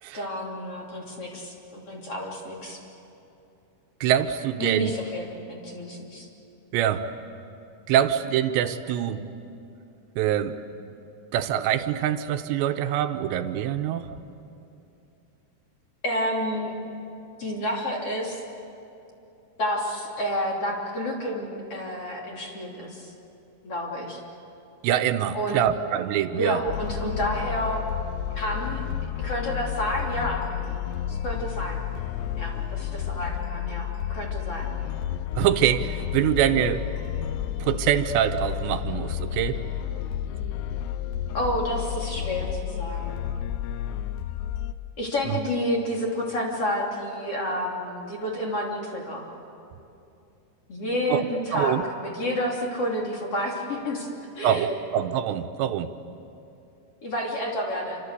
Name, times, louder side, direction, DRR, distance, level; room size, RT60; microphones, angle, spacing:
voice 1, 0.1-2.8 4.6-6.3 16.0-16.7 17.4-18.4 19.6-23.1 23.6-24.2 25.3-25.5 26.4-27.8 28.3-28.9 29.2-30.4 31.1-31.8 32.4-34.7 41.3-43.2 45.0-49.3 50.7-54.1 54.3-54.7 57.0-58.0, equal, 35° left, -1 dB, 3.5 m, -30 dB
voice 2, 4.0-4.9 6.7-7.1 7.9-9.2 10.2-10.6 11.3-14.1 24.8-26.6 35.4-36.9 37.6-39.6 45.3-45.4 51.1-51.3 51.5-51.9 54.4-55.9, right 10 dB, 80° right, 8 dB, 3.0 m, -24 dB
sound 1, 26.7-44.7, left 10 dB, 80° left, 2.7 m, -31 dB
28.0 x 25.5 x 8.3 m, 2.8 s
omnidirectional pair, 5.1 m